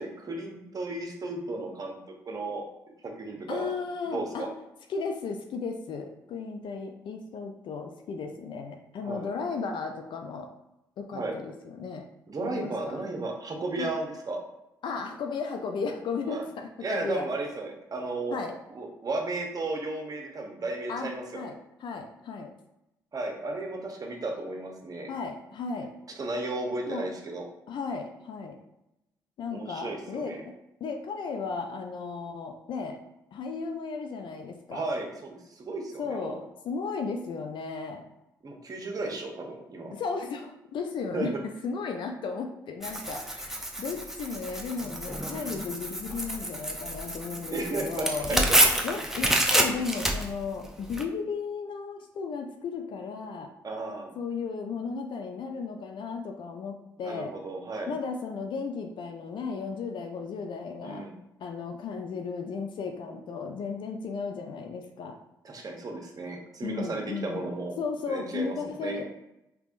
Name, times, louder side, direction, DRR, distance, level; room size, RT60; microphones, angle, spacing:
voice 1, 0.0-1.9 2.3-2.6 3.0-3.7 4.1-4.5 9.0-9.3 11.1-11.4 12.3-14.4 16.3-16.4 16.8-18.4 18.7-21.5 23.1-25.1 26.2-27.5 29.5-30.4 34.7-36.4 38.4-39.9 41.1-41.3 47.5-48.6 53.6-54.1 57.0-57.9 60.8-61.1 65.4-67.8 68.1-68.5 68.8-69.0, right 2 dB, 40° right, 2 dB, 0.8 m, -34 dB
voice 2, 3.5-4.5 4.9-10.5 11.0-12.1 12.4-13.0 13.8-13.9 14.8-17.3 18.3-18.5 20.9-21.1 21.3-21.5 21.8-22.5 25.1-25.9 26.9-27.1 27.7-28.6 29.4-30.5 30.8-33.0 33.3-34.8 36.0-38.1 39.9-41.3 41.6-48.5 48.8-53.5 54.2-57.3 57.9-61.1 61.4-65.2 66.6-67.5 67.8-69.1, left 5 dB, 60° left, 4 dB, 0.4 m, -35 dB
Tearing, 42.8-51.0, right 1 dB, 5° right, 0.6 m, -28 dB
3.4 x 2.9 x 2.5 m, 0.88 s
hypercardioid pair, 40°, 9 cm